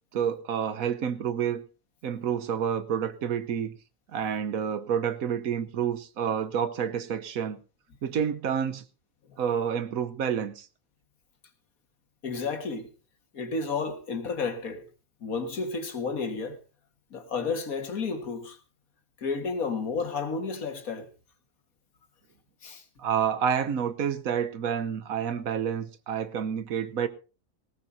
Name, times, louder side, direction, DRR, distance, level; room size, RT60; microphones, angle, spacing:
voice 1, 0.1-1.6 2.0-3.7 4.1-7.6 8.0-8.8 9.4-10.7 23.0-27.1, right 8 dB, 80° right, 1.4 m, -29 dB
voice 2, 12.2-12.9 13.3-14.8 15.2-16.6 17.1-18.6 19.2-21.1 22.6-22.8, left 4 dB, 85° left, 2.1 m, -31 dB
18.5 x 18.0 x 2.7 m
omnidirectional pair, 1.4 m